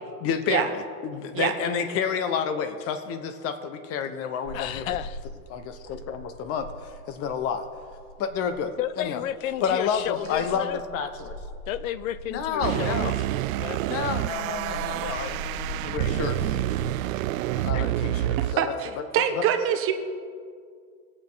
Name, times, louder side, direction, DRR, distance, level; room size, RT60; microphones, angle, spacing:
voice 1, 0.2-4.8 5.5-7.6 8.2-9.2 9.6-11.4 12.3-13.2 13.9-15.4 15.8-16.6 17.6-19.0 19.4-19.5, left 7 dB, 30° left, 9 dB, 1.1 m, -30 dB
sound 1, 4.4-16.9, equal, ahead, 2.9 m, -41 dB
voice 2, 4.5-5.2 8.8-10.8 11.7-13.1 13.6-13.8 15.3-15.5 17.5-17.9, left 12 dB, 60° left, 16 dB, 0.7 m, -32 dB
sound 2, 12.6-18.6, right 14 dB, 60° right, 0.5 m, -28 dB
voice 3, 18.1-19.9, right 9 dB, 30° right, 6 dB, 1.0 m, -25 dB
23.5 x 8.8 x 4.1 m, 2.1 s
supercardioid pair, 140°, 45 cm